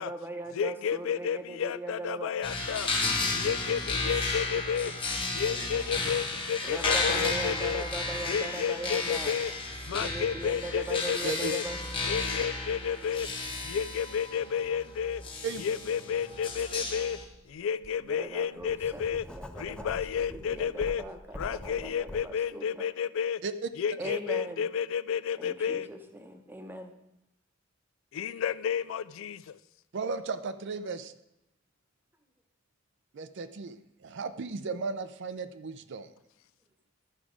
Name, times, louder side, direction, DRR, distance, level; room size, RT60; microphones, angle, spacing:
voice 1, 0.0-2.3 6.6-9.3 9.9-11.8 18.1-22.9 24.0-24.7 25.4-26.9, right 1 dB, 10° right, 5 dB, 0.8 m, -40 dB
voice 2, 0.5-2.9 3.3-4.9 5.3-7.8 8.2-9.5 9.8-11.6 12.0-13.3 13.6-15.2 15.6-17.2 17.5-19.3 19.5-21.0 21.3-23.4 23.8-25.9 28.1-29.6, left 7 dB, 75° left, 16 dB, 0.3 m, -31 dB
sound 1, 2.4-17.2, left 3 dB, 25° left, 1.3 m, -33 dB
voice 3, 11.2-11.5 15.4-15.6 23.4-23.7 24.0-24.2 29.9-31.1 33.1-36.1, right 4 dB, 60° right, 11 dB, 0.5 m, -35 dB
Writing, 17.2-17.3 17.8-22.2, equal, 5° left, 0.4 m, -44 dB
12.5 x 4.9 x 5.0 m, 0.86 s
head